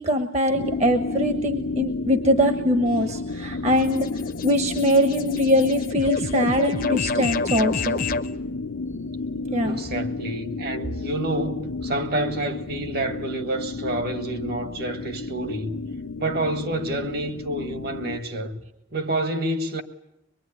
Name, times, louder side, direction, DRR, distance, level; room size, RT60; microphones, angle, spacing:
voice 1, 0.0-4.1 4.4-8.0 9.5-9.8, equal, 35° right, 1.2 m, -22 dB
sound 1, 0.5-18.2, left 3 dB, 90° left, 1.0 m, -31 dB
sound 2, 2.9-8.3, left 4 dB, 45° left, 0.9 m, -30 dB
voice 2, 9.6-15.9 16.2-18.6 18.9-19.8, right 2 dB, 50° right, 1.7 m, -28 dB
23.5 x 22.5 x 9.9 m
head